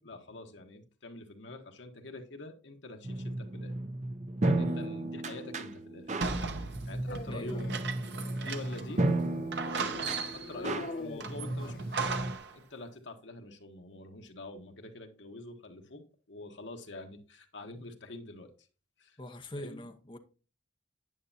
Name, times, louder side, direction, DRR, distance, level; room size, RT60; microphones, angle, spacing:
voice 1, 0.0-3.7 4.4-6.1 6.8-7.8 8.4-9.0 9.6-16.0 16.3-18.5 19.0-19.2 19.5-19.8, left 2 dB, 75° left, 1.3 m, -46 dB
sound 1, 3.0-12.4, right 2 dB, 40° right, 0.7 m, -34 dB
sound 2, 6.2-8.9 9.2-9.3 9.5-10.6 11.2-12.5, right 4 dB, 65° right, 0.9 m, -36 dB
Dog, 7.1-12.2, left 2 dB, 50° left, 0.6 m, -44 dB
voice 2, 7.3-7.7 19.2-20.2, left 1 dB, 25° left, 0.9 m, -42 dB
9.4 x 9.0 x 2.8 m
head